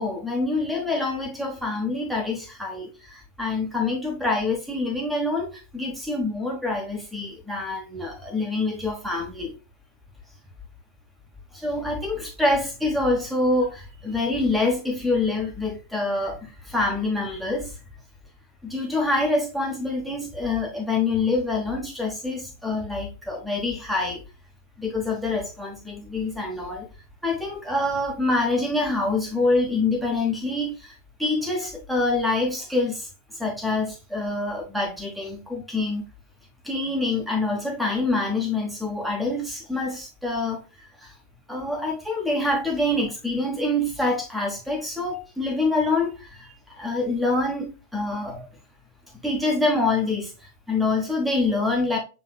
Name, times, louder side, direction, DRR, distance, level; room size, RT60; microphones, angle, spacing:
voice 1, 0.0-9.5 11.5-17.7 18.6-24.2 24.8-26.9 27.2-30.9 31.2-33.1 33.4-36.0 36.6-41.1 41.5-48.5 49.2-52.0, left 2 dB, 5° right, 1.2 m, -26 dB
7.1 x 2.9 x 2.3 m
figure-of-eight pair, 90°, 0 cm